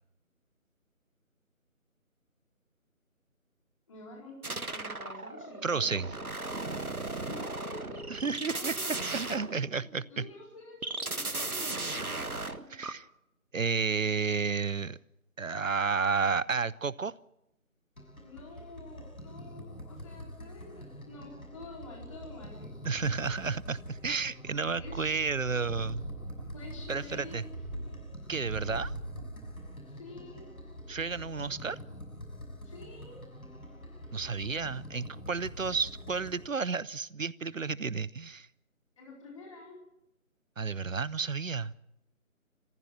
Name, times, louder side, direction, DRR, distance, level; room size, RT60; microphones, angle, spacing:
voice 1, 3.9-6.3 7.2-9.3 10.1-12.3 18.2-22.7 24.8-25.1 26.5-27.5 30.0-30.5 32.6-33.2 39.0-39.8, left 2 dB, 25° left, -2 dB, 4.5 m, -48 dB
sound 1, 4.4-10.0 10.8-12.9, right 2 dB, 90° right, 1.5 m, -36 dB
voice 2, 5.6-6.1 8.1-10.3 12.7-13.1 13.5-15.0 15.4-17.1 22.8-26.0 26.9-27.5 28.3-28.9 30.9-31.8 34.1-38.5 40.6-41.7, right 5 dB, 65° right, 21 dB, 0.9 m, -32 dB
sound 2, 18.0-36.5, equal, 80° left, 5.9 m, -46 dB
sound 3, 22.8-24.3 24.5-29.8 30.2-30.3, right 1 dB, 35° right, 6.6 m, -43 dB
30.0 x 15.0 x 6.0 m, 0.81 s
figure-of-eight pair, 160°, 42 cm